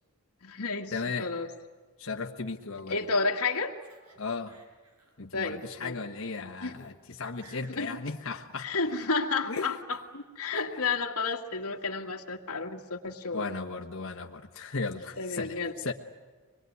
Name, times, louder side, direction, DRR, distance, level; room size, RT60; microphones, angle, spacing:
voice 1, 0.4-1.5 2.9-3.7 5.3-5.9 6.6-6.7 7.7-7.9 8.6-13.4 15.2-15.7, left 4 dB, 85° left, 1 dB, 1.9 m, -31 dB
voice 2, 0.9-1.3 2.0-3.0 4.2-4.6 5.2-8.7 9.5-9.7 10.5-10.6 13.3-15.9, left 4 dB, 60° left, 1 dB, 1.4 m, -36 dB
Laughter, 2.6-4.2 4.5-5.1 5.5-5.7 6.3-6.4 6.7-6.9 7.2-8.0 8.3-9.3 9.9-10.1 10.5-11.0 11.4-11.9, right 2 dB, 85° right, 7.5 m, -59 dB
25.0 x 21.5 x 9.5 m, 1.5 s
head